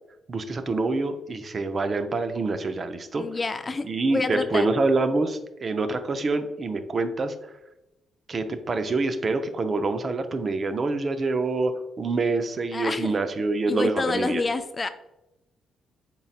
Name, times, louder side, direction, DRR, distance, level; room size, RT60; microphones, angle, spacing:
voice 1, 0.3-3.2 3.8-7.5 8.3-14.4, right 3 dB, 45° right, 8 dB, 0.5 m, -26 dB
voice 2, 3.2-4.7 12.7-13.2 13.7-14.9, left 3 dB, 35° left, 10 dB, 0.4 m, -28 dB
5.5 x 3.9 x 2.4 m, 0.93 s
supercardioid pair, 50°, 0 cm